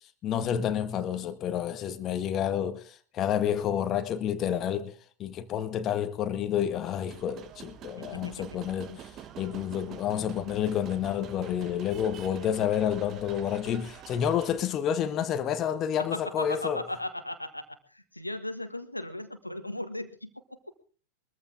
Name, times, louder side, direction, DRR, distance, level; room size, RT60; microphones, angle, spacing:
voice 1, 0.2-9.1 9.4-16.8, left 9 dB, 30° left, 1.6 m, -29 dB
sound 1, 6.7-14.6, right 10 dB, 30° right, 1.4 m, -47 dB
voice 2, 8.0-8.4 16.0-20.3, left 1 dB, 85° left, 1.6 m, -37 dB
22.0 x 14.5 x 3.6 m
figure-of-eight pair, 90°, 0 cm